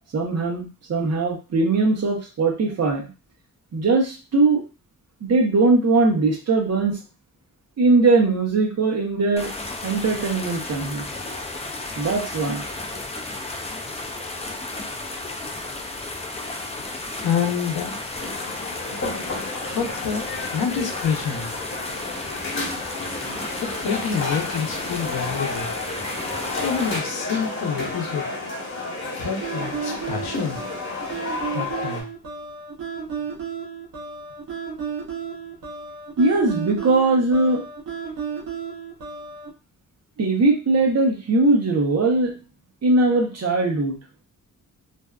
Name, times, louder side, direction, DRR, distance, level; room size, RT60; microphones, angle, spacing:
voice 1, 0.1-3.1 3.7-4.6 5.2-7.0 7.8-9.5 9.8-11.1 12.0-12.6 36.2-37.6 40.2-42.3 42.8-44.0, right 3 dB, 45° right, 2 dB, 0.8 m, -20 dB
sound 1, 9.4-27.0, left 2 dB, 20° left, 0.4 m, -33 dB
voice 2, 17.2-18.0 19.7-21.5 23.6-25.7 26.6-28.3 29.0-30.6 31.5-32.1, left 6 dB, 85° left, 2 dB, 0.7 m, -27 dB
sound 2, 18.2-32.0, left 2 dB, 35° left, 1.1 m, -31 dB
sound 3, 29.4-39.5, right 6 dB, 75° right, 0.8 m, -33 dB
2.6 x 2.2 x 2.3 m, 0.32 s
cardioid pair, 90°, 35 cm